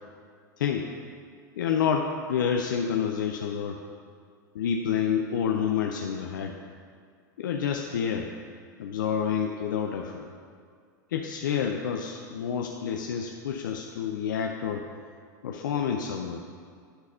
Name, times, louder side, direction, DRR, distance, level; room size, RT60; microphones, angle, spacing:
voice 1, 0.6-0.9 1.6-3.8 4.5-6.5 7.4-8.3 8.8-10.3 11.1-14.8 15.4-16.4, left 7 dB, 75° left, 3 dB, 0.5 m, -28 dB
10.0 x 4.1 x 5.5 m, 2.1 s
hypercardioid pair, 100°, 11 cm